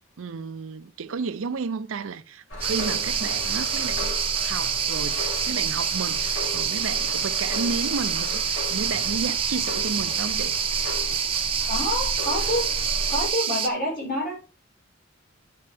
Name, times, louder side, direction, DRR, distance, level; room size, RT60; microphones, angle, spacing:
voice 1, 0.2-4.2 4.4-10.6, right 4 dB, 80° right, 0.5 m, -32 dB
sound 1, 2.5-13.3, left 1 dB, 75° left, 2.6 m, -35 dB
sound 2, 2.6-13.7, right 7 dB, 30° right, 0.7 m, -27 dB
voice 2, 11.7-12.6 13.1-14.3, left 1 dB, 45° left, 3.3 m, -27 dB
11.0 x 4.3 x 3.4 m
head